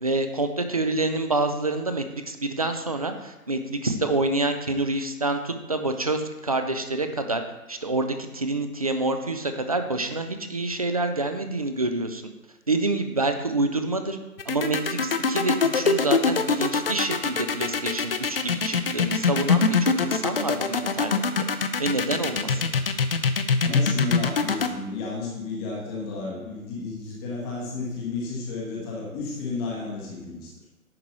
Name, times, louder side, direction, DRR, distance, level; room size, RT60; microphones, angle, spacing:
voice 1, 0.0-7.4 7.7-12.2 12.7-14.2 14.5-21.2 21.6-22.6, right 2 dB, 25° right, 7 dB, 0.5 m, -27 dB
sound 1, 14.4-24.7, left 5 dB, 40° left, 0.6 m, -23 dB
voice 2, 23.6-30.5, left 3 dB, 10° left, -4 dB, 0.8 m, -32 dB
10.5 x 4.6 x 6.9 m, 1.0 s
figure-of-eight pair, 135°, 45 cm